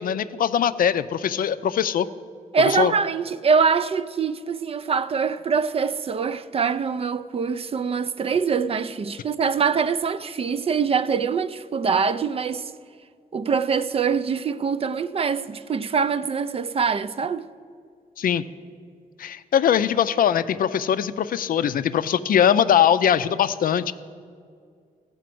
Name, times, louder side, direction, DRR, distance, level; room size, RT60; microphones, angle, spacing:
voice 1, 0.0-2.1 2.6-2.9 18.2-18.4 19.2-23.9, left 9 dB, 70° left, 0.4 m, -21 dB
voice 2, 2.5-12.7 13.3-17.5, right 5 dB, 40° right, 0.4 m, -24 dB
14.5 x 5.1 x 7.6 m
wide cardioid pair, 115°, 15 cm